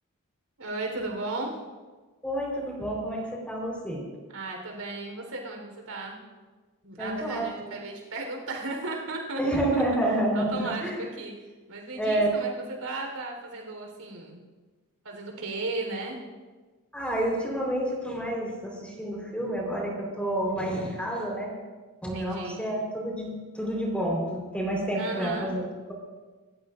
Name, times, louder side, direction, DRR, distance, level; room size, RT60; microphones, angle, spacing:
voice 1, 0.6-1.5 4.3-6.2 6.8-9.8 10.3-11.3 11.7-14.4 15.0-16.2 22.1-22.6 24.9-25.5, right 2 dB, 85° right, 1 dB, 4.1 m, -35 dB
voice 2, 2.2-4.0 7.0-7.4 9.4-11.0 12.0-12.3 16.9-21.5 22.0-25.6, right 1 dB, 5° left, -2 dB, 4.2 m, -29 dB
28.0 x 14.5 x 2.6 m, 1.3 s
head